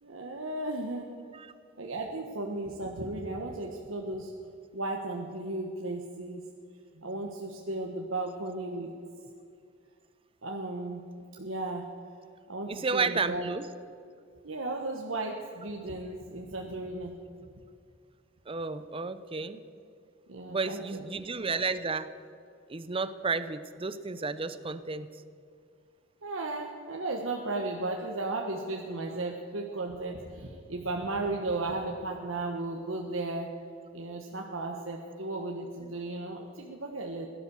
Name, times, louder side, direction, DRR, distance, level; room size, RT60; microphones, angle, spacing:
voice 1, 0.0-1.1 1.8-4.3 4.7-6.4 7.0-8.9 10.4-11.0 11.4-11.8 12.5-13.5 14.4-17.1 20.3-21.0 26.2-33.5 33.9-37.3, right 2 dB, 80° right, 1 dB, 1.3 m, -35 dB
voice 2, 12.7-13.7 18.5-19.6 20.5-22.1 22.7-25.1, right 4 dB, 30° right, 13 dB, 0.7 m, -32 dB
17.0 x 11.5 x 7.0 m, 2.4 s
head